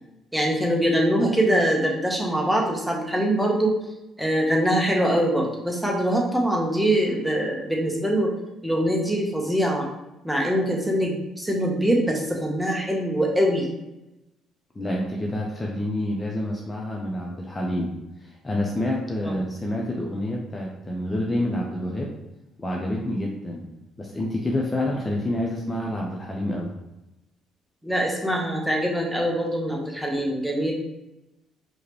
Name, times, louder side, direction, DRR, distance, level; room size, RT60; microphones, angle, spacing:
voice 1, 0.3-3.8 4.2-8.3 8.6-9.8 10.2-13.7 19.2-19.3 27.8-30.7, equal, 5° right, -1 dB, 1.2 m, -23 dB
voice 2, 14.7-22.1 22.6-23.7 24.0-26.7, left 1 dB, 20° left, -2 dB, 0.8 m, -28 dB
4.7 x 3.1 x 3.2 m, 0.94 s
hypercardioid pair, 50°, 0 cm